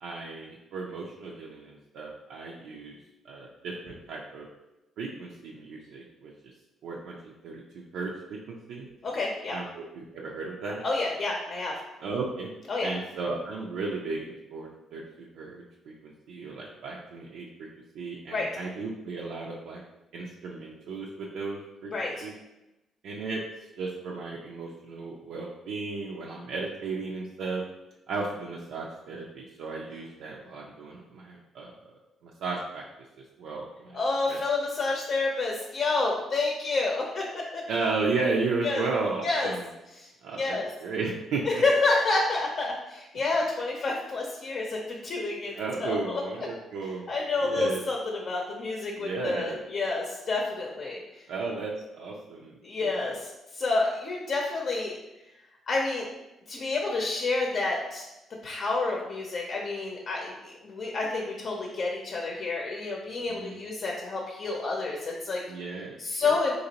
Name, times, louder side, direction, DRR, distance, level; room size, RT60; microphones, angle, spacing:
voice 1, 0.0-3.0 3.2-4.5 5.0-6.3 6.8-8.9 9.5-10.8 12.0-12.5 12.8-17.5 17.9-19.8 20.1-21.9 22.2-22.3 23.0-23.4 23.8-27.6 28.1-31.7 32.2-32.8 33.4-34.0 34.3-34.4 37.7-39.6 40.2-41.4 45.5-47.1 47.4-47.8 49.0-49.6 51.3-52.5 52.8-53.1 63.3-63.5 65.5-66.4, right 3 dB, 80° right, -3 dB, 0.4 m, -34 dB
voice 2, 9.0-9.6 10.8-11.7 12.7-12.9 18.3-18.5 21.9-22.3 33.9-37.6 38.6-38.8 39.2-39.5 40.0-40.1 40.3-40.7 41.5-45.5 45.8-46.5 47.1-51.2 52.6-54.9 55.7-56.1 56.5-58.1 58.4-65.4 66.0-66.5, left 3 dB, 55° left, -1 dB, 0.6 m, -29 dB
3.8 x 2.9 x 2.9 m, 0.96 s
cardioid pair, 90°, 0 cm